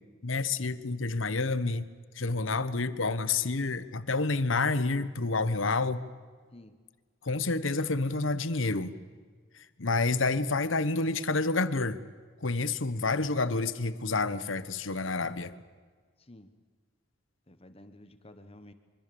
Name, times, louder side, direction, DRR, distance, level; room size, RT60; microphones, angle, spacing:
voice 1, 0.2-1.8 2.2-6.0 7.2-9.0 9.8-12.0 12.4-15.5, left 3 dB, 80° left, 14 dB, 1.2 m, -29 dB
voice 2, 16.2-16.5 17.5-18.7, left 1 dB, 30° left, 9 dB, 1.3 m, -52 dB
25.5 x 24.5 x 7.0 m, 1.5 s
head